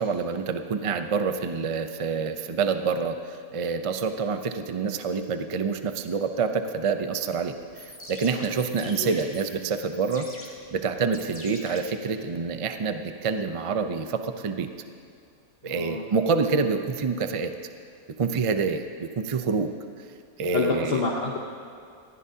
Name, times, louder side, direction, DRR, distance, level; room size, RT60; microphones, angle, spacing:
voice 1, 0.0-10.3 10.7-14.7 15.6-17.5 18.2-20.1 20.4-21.1, right 5 dB, 55° right, 7 dB, 0.3 m, -27 dB
sound 1, 7.6-12.6, left 1 dB, 10° left, 1.5 m, -44 dB
voice 2, 15.7-16.0 20.5-21.4, left 3 dB, 50° left, -1 dB, 1.0 m, -28 dB
20.0 x 15.0 x 2.8 m, 2.3 s
omnidirectional pair, 1.5 m